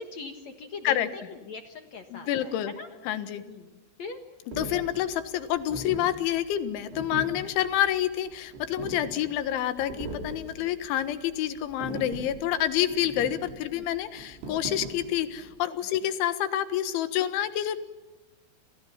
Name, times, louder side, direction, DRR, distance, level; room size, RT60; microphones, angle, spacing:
voice 1, 0.0-1.0 1.5-2.9 3.5-3.6 4.0-4.2 10.5-10.7 13.7-13.8, left 4 dB, 65° left, 7 dB, 1.8 m, -41 dB
voice 2, 0.8-1.3 2.1-2.7 3.0-3.4 4.5-17.8, left 11 dB, 85° left, 12 dB, 3.9 m, -28 dB
sound 1, 4.5-15.5, right 2 dB, 80° right, 7.3 m, -40 dB
29.0 x 28.0 x 5.8 m, 1.2 s
omnidirectional pair, 5.3 m